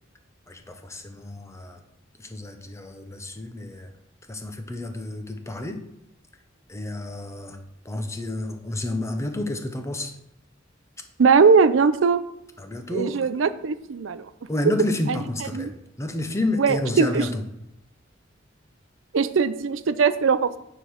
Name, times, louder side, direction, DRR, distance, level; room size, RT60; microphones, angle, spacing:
voice 1, 0.5-1.8 2.2-3.9 4.3-5.8 6.7-7.6 7.8-10.1 12.6-13.3 14.5-17.4, left 1 dB, 15° left, 6 dB, 0.9 m, -30 dB
voice 2, 11.2-12.2 12.9-14.2 15.5-15.7 16.6-17.2 19.1-20.5, right 5 dB, 80° right, 13 dB, 0.5 m, -20 dB
9.9 x 3.9 x 6.4 m, 0.82 s
head